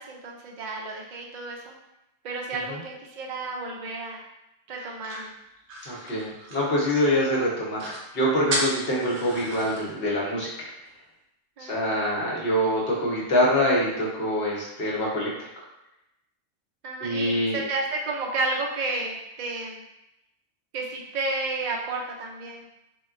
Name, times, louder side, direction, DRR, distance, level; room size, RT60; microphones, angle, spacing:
voice 1, 0.0-1.8 2.2-4.2 4.7-5.3 11.6-11.9 16.8-19.8 20.7-22.7, right 3 dB, 55° right, -1 dB, 0.5 m, -31 dB
sound 1, 4.8-7.2 7.5-7.6 7.8-8.0 8.5-9.8, right 1 dB, 70° right, 1.0 m, -33 dB
voice 2, 5.8-10.7 11.6-15.3 17.0-17.6, equal, 60° left, -5 dB, 1.0 m, -25 dB
3.7 x 2.2 x 2.4 m, 0.87 s
omnidirectional pair, 1.2 m